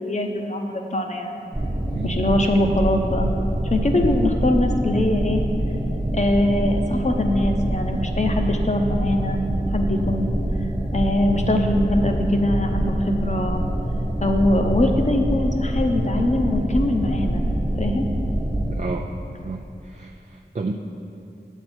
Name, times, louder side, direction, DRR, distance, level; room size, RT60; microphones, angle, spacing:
voice 1, 0.0-1.4 2.0-3.3 3.7-5.4 6.1-9.4 9.7-10.4 10.9-13.6 14.2-17.4 17.8-18.1, left 1 dB, 40° left, 3 dB, 0.8 m, -22 dB
sound 1, 1.5-18.8, right 1 dB, 20° right, 0.9 m, -25 dB
voice 2, 18.7-19.1 19.4-20.7, right 3 dB, 40° right, 1 dB, 0.4 m, -31 dB
8.4 x 8.0 x 4.4 m, 2.7 s
wide cardioid pair, 60°, 19 cm